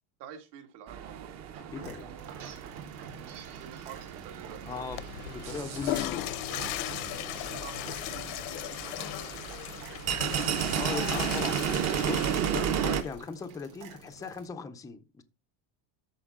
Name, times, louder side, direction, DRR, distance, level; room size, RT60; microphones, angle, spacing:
voice 1, 0.2-1.3 3.5-4.9 7.6-9.4, right 8 dB, 65° right, 2.1 m, -48 dB
sound 1, 0.9-13.0, right 9 dB, 40° right, 0.8 m, -34 dB
sound 2, 1.5-14.4, right 6 dB, 85° right, 4.1 m, -47 dB
voice 2, 1.7-2.1 4.6-5.0 5.3-6.8 10.7-15.2, left 5 dB, 10° left, 0.4 m, -39 dB
Water / Toilet flush, 4.8-13.2, left 15 dB, 90° left, 1.0 m, -37 dB
13.0 x 4.5 x 3.6 m
cardioid pair, 170°, 44 cm